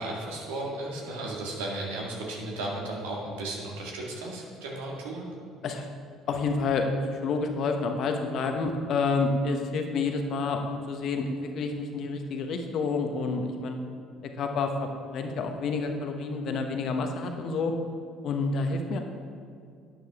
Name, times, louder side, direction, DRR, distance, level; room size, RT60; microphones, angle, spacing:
voice 1, 0.0-5.3, right 2 dB, 80° right, -2 dB, 2.0 m, -35 dB
voice 2, 6.3-6.8 7.1-13.8 14.4-17.7 18.2-19.0, left 4 dB, 55° left, 4 dB, 1.2 m, -29 dB
11.0 x 9.4 x 3.7 m, 2.3 s
hypercardioid pair, 55°, 0 cm